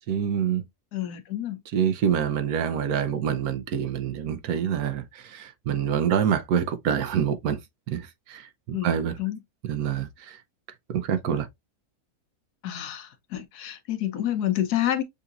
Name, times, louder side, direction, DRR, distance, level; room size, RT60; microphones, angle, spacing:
voice 1, 0.1-0.6 1.7-7.6 7.9-8.0 8.3-8.5 8.8-9.1 9.7-10.4 10.9-11.5, right 8 dB, 75° right, 1.1 m, -26 dB
voice 2, 0.9-1.6 8.7-9.4 12.6-15.0, left 12 dB, 90° left, 1.3 m, -29 dB
6.8 x 2.7 x 2.4 m
omnidirectional pair, 1.6 m